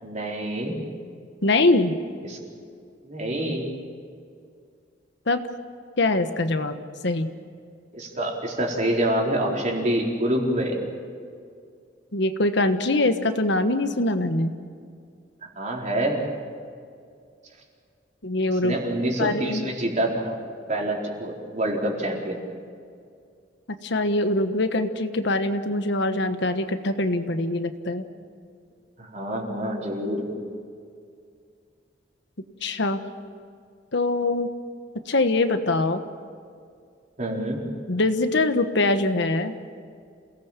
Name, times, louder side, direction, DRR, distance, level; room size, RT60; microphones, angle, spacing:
voice 1, 0.0-0.8 2.2-2.4 3.0-3.7 7.9-10.8 15.6-16.3 18.6-20.4 20.7-22.4 29.0-30.3 32.7-32.8 37.2-37.6, right 1 dB, 40° right, -1 dB, 4.3 m, -26 dB
voice 2, 1.4-2.0 5.3-5.4 6.0-6.8 7.0-7.3 12.1-14.5 18.2-18.8 19.2-19.7 23.8-28.0 32.6-33.0 33.9-34.5 35.1-36.0 37.9-39.5, left 2 dB, 65° left, 8 dB, 1.3 m, -23 dB
28.0 x 18.0 x 7.4 m, 2.3 s
head